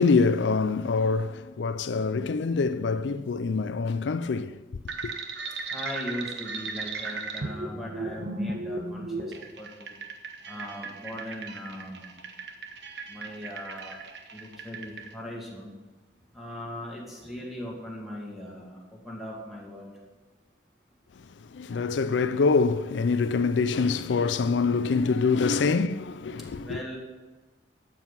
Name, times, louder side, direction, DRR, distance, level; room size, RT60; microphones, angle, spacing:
voice 1, 0.0-4.6 5.0-5.1 21.5-26.8, left 4 dB, 90° left, 0.4 m, -25 dB
sound 1, 4.9-15.1, right 3 dB, 75° right, 1.2 m, -36 dB
voice 2, 5.7-9.9 10.5-12.1 13.1-14.0 14.3-15.7 16.3-18.8 19.0-19.9 26.6-27.0, left 1 dB, ahead, 2.3 m, -39 dB
12.0 x 7.8 x 5.6 m
head